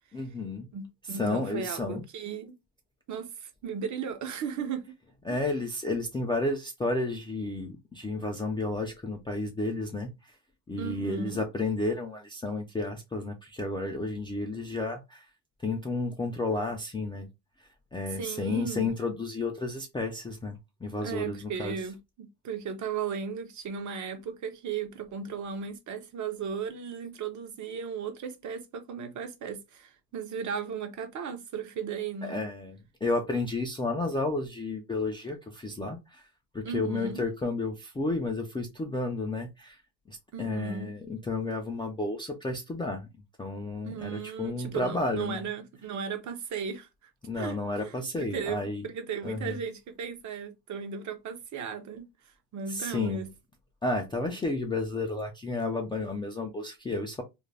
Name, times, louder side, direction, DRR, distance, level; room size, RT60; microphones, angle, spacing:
voice 1, 0.1-0.7 1.1-2.0 5.3-10.1 10.7-15.2 15.6-17.3 17.9-21.7 32.2-36.2 36.5-39.8 40.1-43.1 43.4-45.5 47.2-48.8 49.2-49.6 52.7-53.2 53.8-57.2, left 2 dB, 15° left, 0.3 m, -32 dB
voice 2, 0.7-2.5 3.1-4.9 5.3-5.4 10.8-11.4 18.2-18.9 21.0-32.4 36.6-37.2 40.3-40.9 43.8-52.0 52.5-53.3, right 6 dB, 45° right, 0.6 m, -36 dB
2.5 x 2.1 x 3.2 m
cardioid pair, 115°, 42 cm